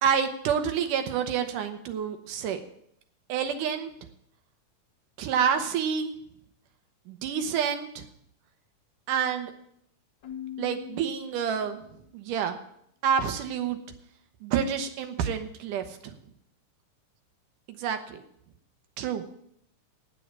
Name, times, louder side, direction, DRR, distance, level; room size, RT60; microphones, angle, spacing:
voice 1, 0.0-2.6 3.3-3.9 5.2-6.1 7.1-8.1 9.1-9.5 10.6-11.8 12.1-12.6 13.0-13.8 14.4-16.1 17.7-18.2 19.0-19.3, right 7 dB, 85° right, 7 dB, 2.7 m, -28 dB
Keyboard (musical), 10.2-12.1, left 11 dB, 80° left, 0.9 m, -42 dB
9.5 x 8.5 x 8.9 m, 0.72 s
omnidirectional pair, 3.6 m